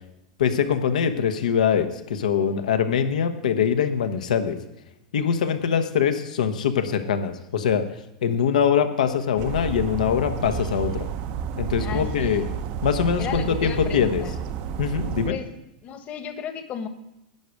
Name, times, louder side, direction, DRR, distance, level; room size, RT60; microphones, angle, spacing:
voice 1, 0.4-4.6 5.1-7.8 8.2-11.1 11.6-12.4 12.8-14.2 14.8-15.4, left 7 dB, 80° left, 8 dB, 1.2 m, -23 dB
sound 1, 9.4-15.3, right 6 dB, 50° right, 0.8 m, -30 dB
voice 2, 11.8-12.5 13.2-14.3 15.3-15.5 15.8-16.9, left 8 dB, 35° left, 9 dB, 1.4 m, -34 dB
11.0 x 5.2 x 8.5 m, 0.88 s
hypercardioid pair, 105°, 4 cm